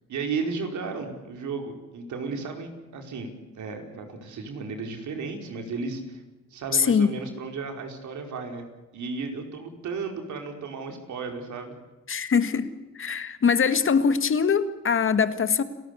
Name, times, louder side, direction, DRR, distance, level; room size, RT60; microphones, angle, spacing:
voice 1, 0.1-6.2 6.5-8.7 8.9-11.8, right 4 dB, 70° right, 4 dB, 4.9 m, -34 dB
voice 2, 6.7-7.1 12.1-15.6, left 6 dB, 45° left, 11 dB, 1.7 m, -23 dB
30.0 x 13.5 x 8.3 m, 1.1 s
cardioid pair, 90°, 30 cm